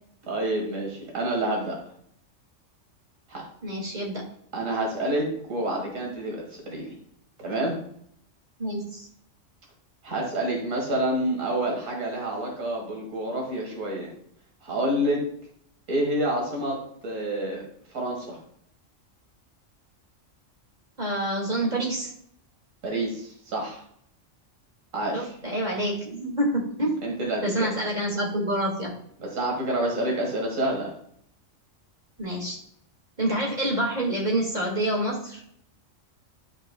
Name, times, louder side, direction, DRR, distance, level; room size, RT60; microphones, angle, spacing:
voice 1, 0.3-1.8 3.3-3.4 4.5-6.9 7.4-7.8 10.0-14.1 14.6-15.2 15.9-16.8 17.0-17.6 17.9-18.4 22.8-23.8 24.9-25.3 27.0-27.7 29.2-30.9, right 1 dB, 80° right, -1 dB, 1.9 m, -28 dB
voice 2, 3.6-4.2 8.6-9.1 21.0-22.1 25.1-27.0 27.4-29.0 32.2-32.6 33.2-35.4, right 1 dB, 35° right, -2 dB, 2.1 m, -27 dB
12.0 x 4.6 x 2.2 m, 0.67 s
omnidirectional pair, 1.3 m